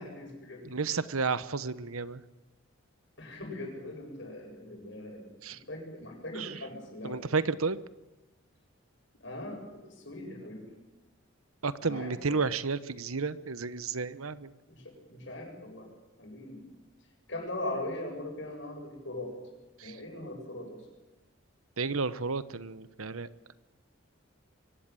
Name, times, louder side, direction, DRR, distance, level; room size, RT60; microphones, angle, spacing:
voice 1, 0.0-0.6 3.2-7.4 9.2-10.6 11.8-12.4 14.7-15.9 16.2-16.7 17.3-19.3 19.8-20.9, left 1 dB, 55° left, 2 dB, 8.0 m, -40 dB
voice 2, 0.6-2.2 5.4-5.6 6.3-6.6 7.0-7.8 11.6-14.5 19.8-20.0 21.8-23.3, right 4 dB, 85° right, 15 dB, 1.0 m, -32 dB
24.0 x 16.5 x 9.1 m, 1.1 s
head